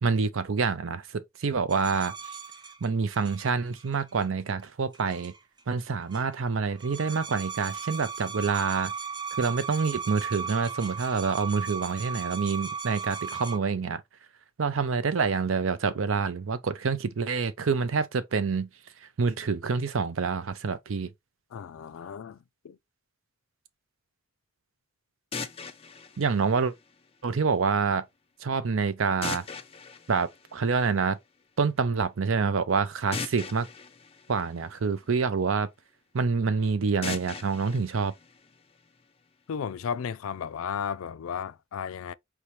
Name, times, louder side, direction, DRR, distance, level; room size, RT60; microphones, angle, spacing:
voice 1, 0.0-2.1 2.8-5.3 5.7-8.9 9.4-14.0 14.6-18.7 19.2-21.1 26.2-26.7 27.2-28.0 28.4-29.4 30.1-31.2 31.6-33.7 34.3-35.7 36.1-38.1, right 5 dB, 70° right, 0.5 m, -27 dB
sound 1, 1.7-4.3 4.9-5.6 5.9-6.4 6.7-13.6, right 6 dB, 20° right, 0.5 m, -37 dB
voice 2, 21.5-22.8 39.5-42.1, left 7 dB, 85° left, 0.4 m, -34 dB
sound 2, 25.3-27.3 29.2-31.2 33.1-35.3 37.0-39.0, left 5 dB, 30° left, 0.5 m, -40 dB
4.6 x 2.8 x 3.1 m
head